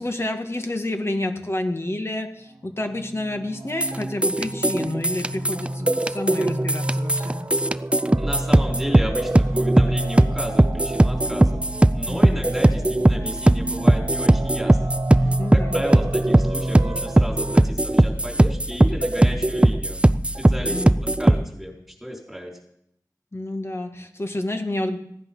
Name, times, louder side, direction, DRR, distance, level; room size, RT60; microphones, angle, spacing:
voice 1, 0.0-7.5 12.1-12.5 15.2-15.8 20.7-21.0 23.3-25.0, left 1 dB, 40° left, 5 dB, 1.9 m, -29 dB
sound 1, 2.9-17.6, right 1 dB, 55° right, 1.3 m, -30 dB
sound 2, 3.8-21.4, right 1 dB, 15° right, 0.4 m, -19 dB
voice 2, 8.2-11.6 11.9-20.0 20.5-21.7 22.0-22.5, equal, ahead, -1 dB, 4.9 m, -33 dB
16.0 x 10.5 x 5.7 m, 0.73 s
wide cardioid pair, 50°, 7 cm